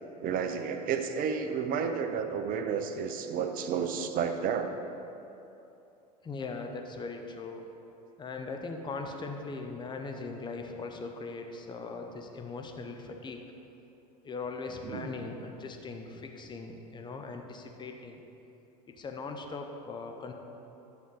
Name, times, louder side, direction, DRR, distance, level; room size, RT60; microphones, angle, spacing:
voice 1, 0.2-4.7 14.8-15.1, right 6 dB, 40° right, 7 dB, 0.9 m, -31 dB
voice 2, 6.2-7.6 8.2-13.4 14.2-18.2 19.0-20.3, left 3 dB, 20° left, 4 dB, 1.0 m, -40 dB
10.5 x 7.2 x 4.2 m, 2.8 s
hypercardioid pair, 85°, 21 cm